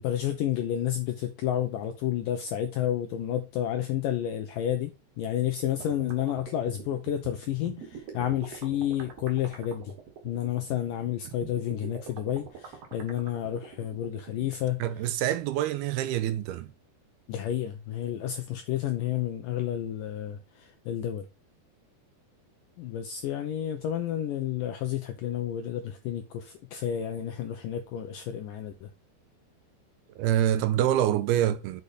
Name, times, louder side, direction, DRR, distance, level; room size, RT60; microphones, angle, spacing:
voice 1, 0.0-4.9 5.2-9.9 10.2-14.8 17.3-21.3 22.8-28.9, left 11 dB, 85° left, 1.9 m, -30 dB
sound 1, 5.8-14.5, right 6 dB, 60° right, 1.7 m, -44 dB
voice 2, 14.8-16.7 30.2-31.8, right 11 dB, 85° right, 2.4 m, -26 dB
6.6 x 5.1 x 4.1 m
omnidirectional pair, 4.8 m